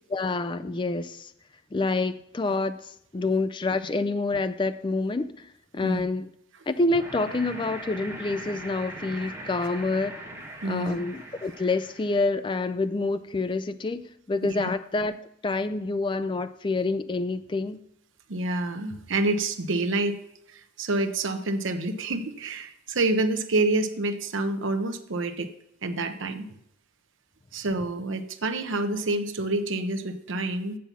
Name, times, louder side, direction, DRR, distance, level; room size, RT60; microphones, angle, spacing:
voice 1, 0.1-1.3 1.7-5.5 5.7-6.3 6.7-10.2 10.6-14.0 14.3-15.2 15.4-17.8, left 3 dB, 25° left, 0.3 m, -27 dB
sound 1, 6.9-12.3, right 1 dB, 15° right, 1.9 m, -40 dB
voice 2, 10.6-11.0 14.4-14.7 18.3-20.2 20.5-25.5 25.8-26.6 27.5-30.8, right 2 dB, 70° right, 0.7 m, -28 dB
7.5 x 6.9 x 5.9 m
head